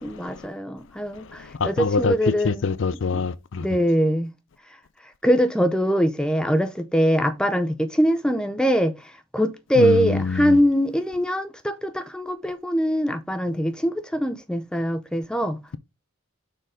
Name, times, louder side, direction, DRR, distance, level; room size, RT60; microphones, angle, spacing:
voice 1, 0.0-2.6 3.6-4.3 5.2-8.9 9.3-15.6, equal, 5° left, 0.6 m, -22 dB
voice 2, 1.6-3.3 9.8-10.6, left 4 dB, 55° left, 0.4 m, -24 dB
6.6 x 3.9 x 4.9 m
head